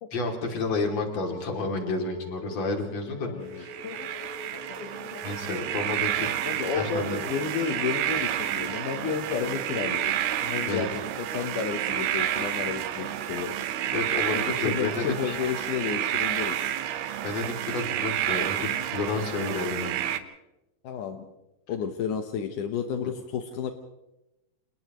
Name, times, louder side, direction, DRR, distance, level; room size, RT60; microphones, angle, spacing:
voice 1, 0.1-3.7 5.2-6.3 6.6-7.2 10.7-10.9 13.9-15.4 17.2-20.0, left 3 dB, 40° left, 2 dB, 3.6 m, -30 dB
sound 1, 1.1-15.7, equal, 5° left, 5.0 m, -47 dB
voice 2, 3.2-4.1 4.5-5.3 6.5-10.1 10.4-10.9 11.2-13.6 14.3-16.7 20.8-21.3 21.7-23.7, left 7 dB, 70° left, 5 dB, 2.1 m, -32 dB
sound 2, 3.6-20.2, right 11 dB, 75° right, 2.9 m, -30 dB
30.0 x 28.0 x 3.1 m, 0.96 s
omnidirectional pair, 5.0 m